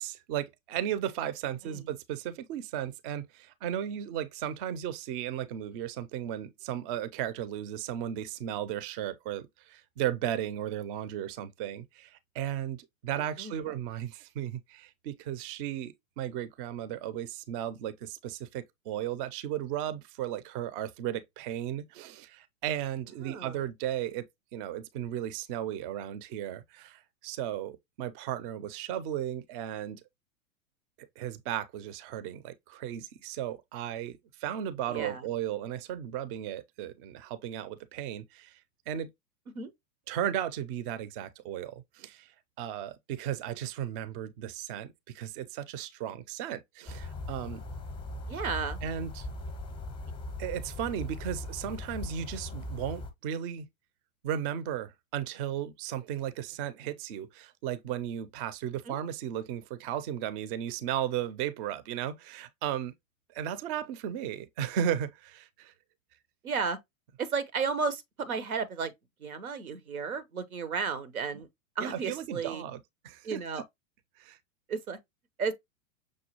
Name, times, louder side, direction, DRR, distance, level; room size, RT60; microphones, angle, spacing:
voice 1, 0.0-24.3 24.5-30.0 31.0-38.6 38.9-39.1 40.1-47.6 48.8-49.3 50.4-53.7 54.2-62.9 63.3-65.7 71.3-71.4 71.8-73.4 74.2-74.4, right 10 dB, 40° right, 0.5 m, -35 dB
voice 2, 23.2-23.6 34.9-35.3 39.5-39.7 48.3-48.8 58.9-59.0 66.4-66.8 67.2-68.9 69.2-71.5 71.8-72.6 73.2-73.6 74.7-75.0 75.4-75.5, right 5 dB, 90° right, 0.8 m, -33 dB
sound 1, 46.9-53.1, left 2 dB, 10° left, 0.6 m, -39 dB
6.2 x 2.3 x 2.9 m
hypercardioid pair, 105°, 42 cm